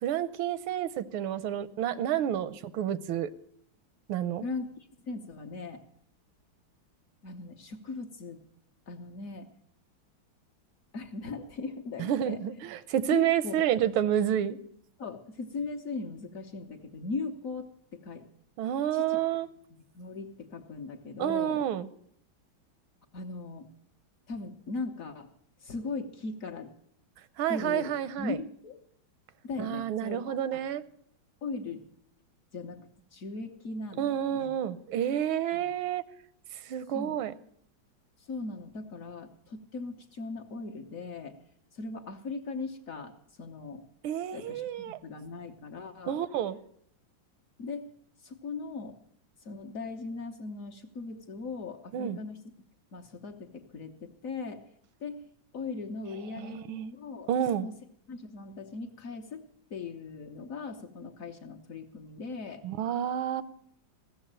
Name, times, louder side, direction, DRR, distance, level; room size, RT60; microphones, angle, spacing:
voice 1, 0.0-3.3 4.1-4.4 12.0-14.6 18.6-19.5 21.2-21.9 27.4-28.4 29.6-30.8 34.0-36.0 36.6-37.3 44.0-45.0 46.1-46.6 51.9-52.2 56.4-56.9 57.3-57.7 62.6-63.4, right 10 dB, 85° right, 15 dB, 1.5 m, -29 dB
voice 2, 5.0-5.8 7.2-8.4 8.9-9.5 10.9-12.4 13.1-14.0 15.0-18.2 18.9-19.2 19.9-21.6 23.1-23.7 24.3-25.3 25.6-26.7 27.5-28.8 29.4-30.7 31.4-31.8 32.5-34.5 35.5-35.6 36.9-37.2 38.2-41.4 41.7-43.9 44.3-46.2 47.6-47.9 48.2-49.0 49.4-52.4 52.9-54.6 55.0-55.2 55.5-57.3 57.6-57.7 58.1-62.6, left 4 dB, 50° left, 3 dB, 1.1 m, -39 dB
15.5 x 7.1 x 8.7 m, 0.67 s
omnidirectional pair, 2.2 m